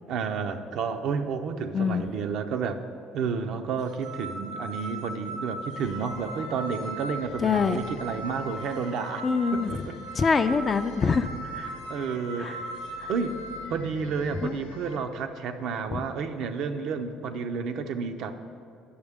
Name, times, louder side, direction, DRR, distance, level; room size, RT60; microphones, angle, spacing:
voice 1, 0.1-2.8 3.1-9.3 9.5-10.0 11.6-12.8 13.1-13.4 13.7-18.4, right 5 dB, 65° right, 8 dB, 0.5 m, -31 dB
voice 2, 1.7-2.0 7.4-7.8 9.2-9.7 10.2-11.3 12.4-12.6 13.0-13.1 14.4-14.5 15.9-16.0, left 5 dB, 35° left, 8 dB, 0.3 m, -24 dB
sound 1, 3.8-13.6, right 2 dB, 85° right, 1.9 m, -39 dB
sound 2, 5.8-15.0, left 6 dB, 90° left, 0.5 m, -47 dB
9.5 x 6.4 x 3.5 m, 2.5 s
hypercardioid pair, 70°, 0 cm